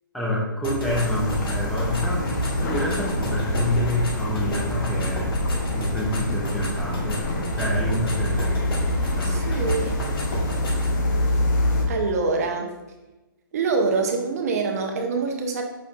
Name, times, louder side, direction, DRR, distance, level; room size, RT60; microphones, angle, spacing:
voice 1, 0.1-5.3 5.7-7.2 7.5-9.6, left 1 dB, ahead, -5 dB, 0.4 m, -28 dB
sound 1, 0.6-11.0, left 1 dB, 75° left, 1.3 m, -33 dB
sound 2, 0.8-11.9, left 1 dB, 50° left, 0.8 m, -26 dB
voice 2, 9.2-10.0 11.9-12.7 13.5-15.6, right 4 dB, 40° right, 3 dB, 0.7 m, -25 dB
5.1 x 4.0 x 2.3 m, 1.1 s
hypercardioid pair, 160°, 12 cm